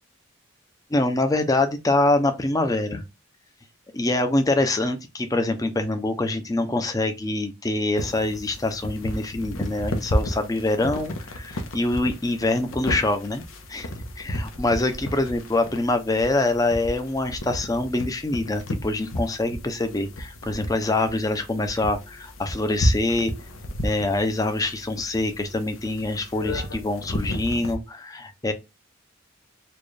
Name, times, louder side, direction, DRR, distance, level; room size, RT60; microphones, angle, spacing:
voice 1, 0.9-3.0 3.9-13.4 13.7-13.9 14.2-23.3 23.8-28.5, left 2 dB, 15° left, 0.5 m, -25 dB
sound 1, 8.0-27.8, equal, 90° left, 0.8 m, -32 dB
4.2 x 2.4 x 3.2 m
head